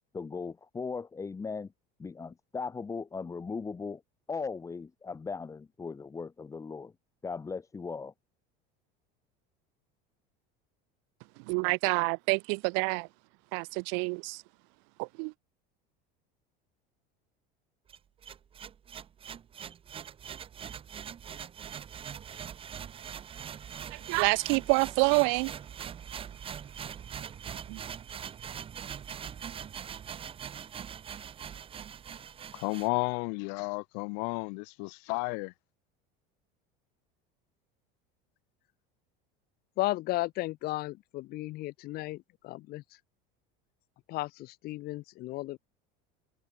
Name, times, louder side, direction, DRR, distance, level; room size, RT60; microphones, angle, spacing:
voice 1, 0.1-1.7 2.0-4.0 4.3-6.9 7.2-8.1, left 5 dB, 15° left, 5.5 m, -38 dB
voice 2, 11.5-13.1 13.5-14.4 15.0-15.3 23.9-25.5 27.7-27.8, right 40 dB or more, 65° right, 2.0 m, -27 dB
sound 1, 17.9-32.9, right 8 dB, 25° right, 6.5 m, -42 dB
voice 3, 32.5-35.5, left 40 dB or more, 70° left, 2.9 m, -32 dB
voice 4, 39.8-42.8 44.1-45.6, left 18 dB, 45° left, 2.4 m, -34 dB
cardioid pair, 160°, 21 cm